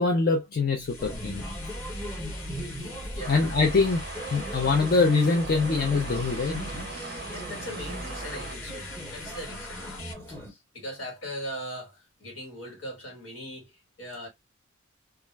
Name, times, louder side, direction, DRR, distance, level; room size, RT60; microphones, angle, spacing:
voice 1, 0.0-1.4 3.3-4.0 4.3-6.6, left 4 dB, 45° left, 0.4 m, -23 dB
sound 1, 0.7-10.1, left 1 dB, 85° left, 1.0 m, -40 dB
sound 2, 1.0-10.5, equal, 10° left, 0.9 m, -40 dB
sound 3, 3.2-8.6, right 4 dB, 50° right, 0.5 m, -40 dB
voice 2, 7.3-9.8 10.3-14.3, equal, 65° left, 1.5 m, -39 dB
2.4 x 2.1 x 3.2 m
head